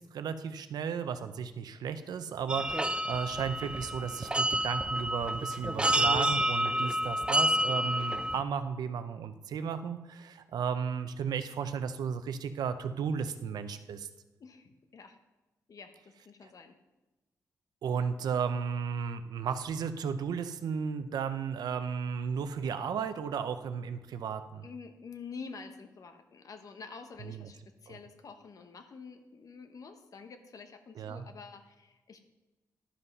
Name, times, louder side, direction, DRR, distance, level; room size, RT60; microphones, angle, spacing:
voice 1, 0.0-14.1 17.8-24.7 27.3-27.5 27.9-28.0 31.0-31.2, right 6 dB, 80° right, 10 dB, 0.6 m, -34 dB
sound 1, 2.5-8.4, right 1 dB, 15° right, 0.5 m, -29 dB
voice 2, 14.4-15.2 15.7-16.7 24.6-32.2, left 5 dB, 60° left, 7 dB, 1.1 m, -48 dB
11.5 x 5.6 x 5.3 m, 1.1 s
cardioid pair, 85°, 7 cm